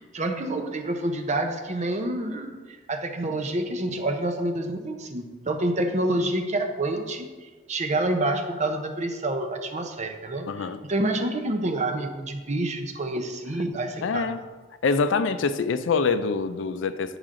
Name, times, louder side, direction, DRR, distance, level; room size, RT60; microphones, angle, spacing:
voice 1, 0.0-2.6 2.9-7.3 7.7-10.5 10.9-14.3, right 1 dB, 40° right, 5 dB, 0.7 m, -28 dB
voice 2, 10.5-10.8 14.0-14.4 14.8-17.2, left 4 dB, 70° left, 12 dB, 0.4 m, -25 dB
9.0 x 4.9 x 3.7 m, 1.4 s
head